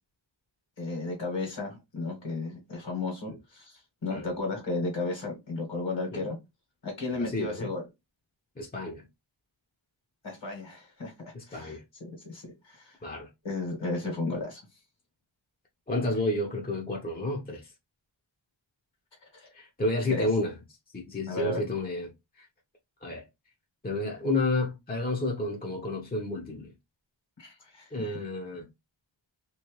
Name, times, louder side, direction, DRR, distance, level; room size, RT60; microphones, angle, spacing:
voice 1, 0.8-6.4 6.8-7.8 10.2-11.1 11.5-13.0 13.4-14.6 19.3-19.5 20.1-20.3 21.3-21.7 27.4-28.1, left 3 dB, 65° left, 1.7 m, -34 dB
voice 2, 7.2-7.7 8.6-9.0 11.3-11.8 13.0-13.3 15.9-17.7 19.5-20.5 20.9-22.1 22.4-22.5 23.0-23.2 23.8-26.7 27.9-28.7, left 2 dB, 20° left, 0.8 m, -31 dB
3.0 x 2.9 x 3.0 m
wide cardioid pair, 75°, 47 cm